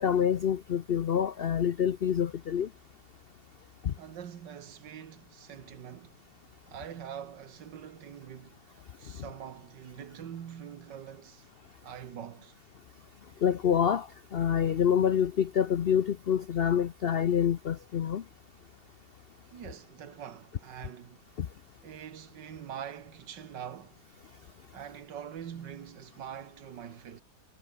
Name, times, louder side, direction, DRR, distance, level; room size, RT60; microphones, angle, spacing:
voice 1, 0.0-2.7 3.8-3.9 13.4-18.2 21.4-21.5, left 8 dB, 75° left, 0.5 m, -27 dB
voice 2, 4.0-6.2 6.7-11.5 11.8-12.5 19.5-21.2 21.8-24.0 24.7-27.2, right 9 dB, 85° right, 1.9 m, -44 dB
omnidirectional pair, 1.9 m